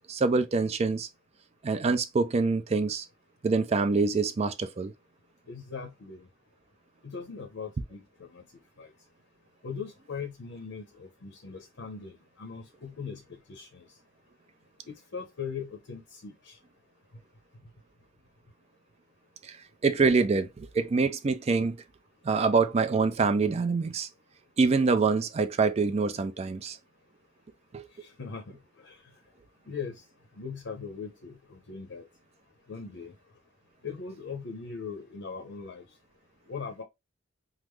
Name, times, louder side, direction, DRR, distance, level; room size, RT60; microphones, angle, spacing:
voice 1, 0.1-1.1 1.6-3.1 3.4-4.9 19.4-19.5 19.8-21.8 22.2-24.1 24.6-26.8 27.7-27.9, right 4 dB, 30° right, 0.4 m, -25 dB
voice 2, 5.5-6.3 7.0-8.5 8.8-8.9 9.6-13.8 14.9-16.6 28.0-29.0 29.7-30.0 30.4-32.1 32.7-33.1 33.8-35.9 36.5-36.8, left 5 dB, 60° left, 0.7 m, -40 dB
3.6 x 2.0 x 3.0 m
head